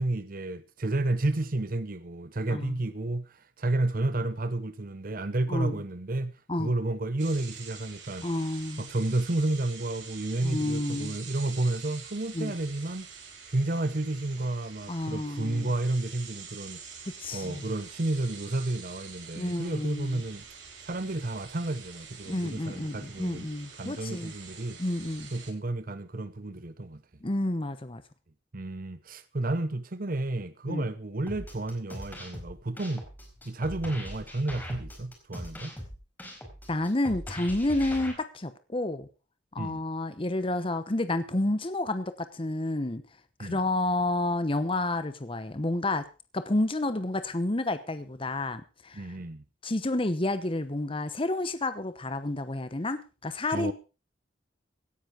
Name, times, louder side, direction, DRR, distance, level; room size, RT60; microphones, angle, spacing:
voice 1, 0.0-8.3 8.8-13.1 13.5-17.1 17.3-20.4 20.8-23.5 23.8-24.8 25.3-27.0 28.5-33.0 33.4-35.7 39.6-39.8 43.4-43.6 48.9-49.4 53.5-53.7, right 2 dB, 50° right, 0.9 m, -31 dB
voice 2, 5.5-5.8 6.5-6.7 8.2-8.9 10.4-11.2 12.3-12.5 14.9-15.7 17.2-17.7 19.4-20.2 22.3-24.3 24.8-25.3 27.2-28.0 30.7-30.8 36.7-39.1 39.5-43.0 43.4-46.0 46.3-49.1 49.6-53.7, left 2 dB, 30° left, 1.0 m, -30 dB
sound 1, 7.2-25.5, right 6 dB, 85° right, 7.1 m, -46 dB
sound 2, 31.3-38.1, equal, 10° left, 4.6 m, -41 dB
17.5 x 10.5 x 5.0 m
head